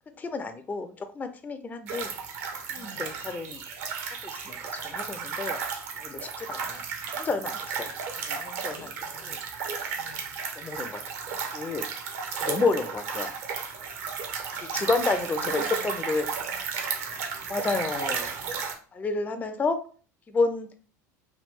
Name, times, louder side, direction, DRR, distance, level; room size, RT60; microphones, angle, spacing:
voice 1, 0.1-2.1 2.7-3.6 4.2-4.6 4.8-5.6 6.0-6.8 7.1-7.9 8.2-8.7 10.6-11.0 11.5-11.8 12.3-13.3 14.7-16.3 17.5-18.3 18.9-19.8 20.3-20.7, left 3 dB, 20° left, 9 dB, 0.4 m, -30 dB
sound 1, 1.9-18.7, right 6 dB, 65° right, 0.8 m, -34 dB
voice 2, 2.7-3.4 8.6-9.4 9.9-10.4 11.2-11.4 14.5-16.5 17.8-18.1, left 2 dB, 80° left, 3 dB, 1.0 m, -49 dB
3.2 x 2.3 x 3.4 m, 0.41 s
figure-of-eight pair, 70°, 9 cm